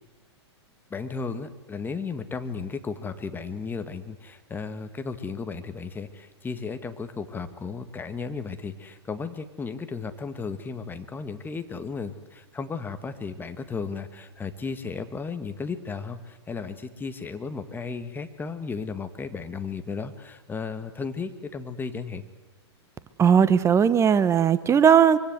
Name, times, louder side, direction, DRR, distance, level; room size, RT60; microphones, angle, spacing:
voice 1, 0.9-22.3, left 5 dB, 15° left, 9 dB, 2.0 m, -34 dB
voice 2, 23.2-25.2, right 7 dB, 20° right, 15 dB, 1.2 m, -18 dB
24.5 x 24.5 x 8.1 m, 1.2 s
hypercardioid pair, 110°, 15 cm